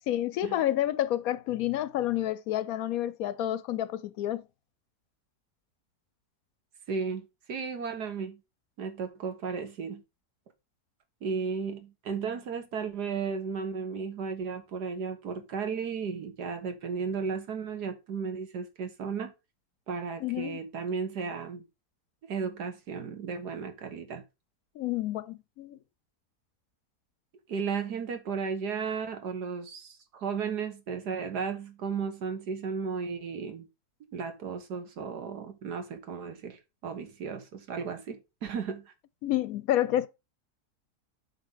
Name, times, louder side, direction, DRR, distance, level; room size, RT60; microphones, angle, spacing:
voice 1, 0.1-4.4 20.2-20.6 24.8-25.8 39.2-40.1, left 13 dB, 70° left, 0.9 m, -29 dB
voice 2, 6.9-8.4 8.8-10.0 11.2-19.3 19.9-21.6 22.2-24.2 27.5-33.7 34.1-38.9, right 5 dB, 85° right, 1.9 m, -34 dB
8.3 x 3.8 x 5.5 m
omnidirectional pair, 1.7 m